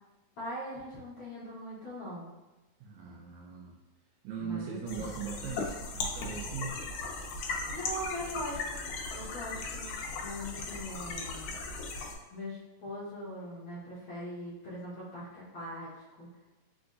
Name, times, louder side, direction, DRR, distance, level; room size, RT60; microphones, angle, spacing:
voice 1, 0.4-2.3 4.4-5.1 7.7-8.8 9.1-9.9 10.2-11.6 12.3-16.3, equal, 60° left, -10 dB, 1.4 m, -41 dB
voice 2, 2.8-3.8 4.2-6.8, right 5 dB, 80° right, -2 dB, 1.7 m, -39 dB
sound 1, 4.9-12.2, left 3 dB, 80° left, 1.8 m, -37 dB
5.0 x 3.4 x 2.5 m, 1.1 s
omnidirectional pair, 3.9 m